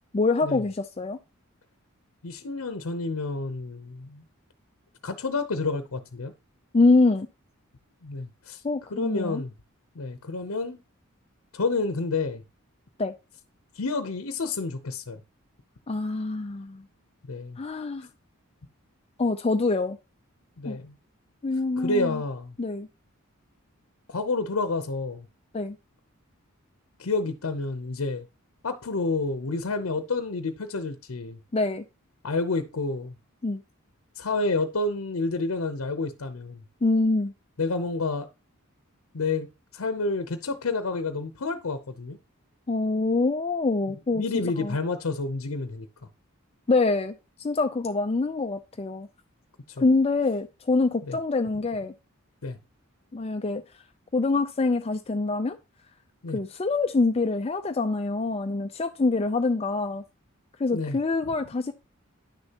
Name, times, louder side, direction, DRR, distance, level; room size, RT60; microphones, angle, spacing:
voice 1, 0.1-1.2 6.7-7.3 8.6-9.4 13.0-13.1 15.9-16.8 17.6-18.1 19.2-20.0 20.7-20.8 21.4-22.2 22.6-22.9 25.5-25.8 31.5-31.8 33.4-33.6 36.8-37.3 42.7-44.2 44.6-44.8 46.7-49.1 49.8-51.9 53.1-53.6 54.1-55.6 56.3-60.0 60.6-61.7, left 3 dB, 25° left, 0.4 m, -25 dB
voice 2, 2.2-4.2 5.0-6.3 8.0-8.6 8.9-9.5 10.0-10.8 11.5-12.4 13.8-15.2 17.3-17.6 20.6-20.9 21.8-22.5 24.1-25.2 27.0-28.2 28.6-31.4 32.2-33.1 34.2-36.6 37.6-38.3 39.1-39.5 39.7-42.2 44.1-45.9 51.1-51.2 52.4-52.6 56.2-56.4 60.7-61.0, left 3 dB, 80° left, 0.8 m, -29 dB
9.9 x 6.5 x 2.9 m
head